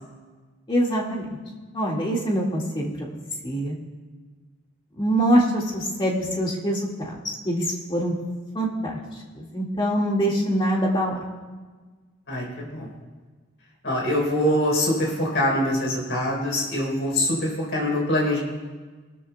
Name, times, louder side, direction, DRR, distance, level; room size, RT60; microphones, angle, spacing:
voice 1, 0.7-1.3 1.7-3.1 3.4-3.7 5.0-8.1 8.5-9.0 9.4-11.1, equal, 25° left, -2 dB, 2.0 m, -24 dB
voice 2, 12.3-12.9 13.8-18.4, left 1 dB, 55° left, -2 dB, 4.1 m, -24 dB
23.0 x 13.0 x 2.3 m, 1.4 s
head